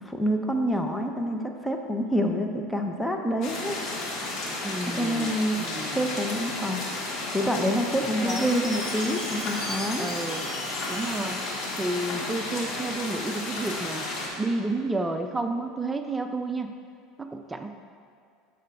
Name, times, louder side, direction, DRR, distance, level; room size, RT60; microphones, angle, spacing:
voice 1, 0.0-3.8 5.0-5.7 5.9-6.8 7.3-10.1, equal, 10° left, 3 dB, 0.8 m, -27 dB
sound 1, 3.4-14.3, left 2 dB, 55° left, 1.8 m, -33 dB
voice 2, 4.6-6.1 8.0-8.6 10.0-10.5 10.9-11.4 11.8-14.1 14.4-16.7 17.2-17.7, right 2 dB, 15° right, 6 dB, 0.5 m, -31 dB
Chime, 8.3-12.4, left 1 dB, 30° left, 1.6 m, -39 dB
11.5 x 6.7 x 2.5 m, 2.4 s
supercardioid pair, 100°, 0 cm